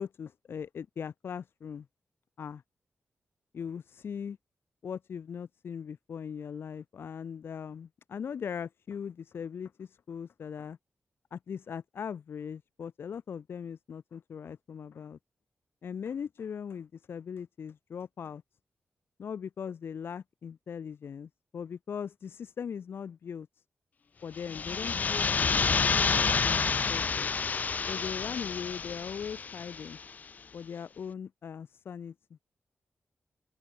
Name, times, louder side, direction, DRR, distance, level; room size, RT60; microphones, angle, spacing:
voice 1, 0.0-1.9 2.4-2.6 3.5-4.4 4.8-10.8 11.3-15.2 15.8-18.4 19.2-23.6 24.2-27.3 27.9-30.0 30.5-32.4, left 7 dB, 70° left, 7.8 m, -40 dB
sound 1, 24.4-30.0, left 5 dB, 45° left, 0.4 m, -29 dB
open air
wide cardioid pair, 125°, 4 cm